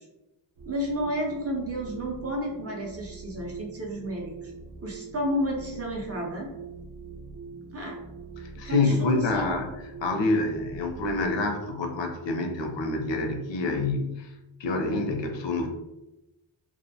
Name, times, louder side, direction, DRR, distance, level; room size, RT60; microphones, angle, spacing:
sound 1, 0.6-11.5, right 4 dB, 70° right, 0.7 m, -43 dB
voice 1, 0.7-4.5 4.8-6.5 7.7-8.0 8.6-9.6, equal, 35° right, -2 dB, 0.4 m, -31 dB
voice 2, 8.4-9.7 10.0-14.3 14.6-15.7, left 2 dB, 65° left, 3 dB, 0.5 m, -27 dB
2.5 x 2.0 x 2.6 m, 0.97 s
wide cardioid pair, 150°, 48 cm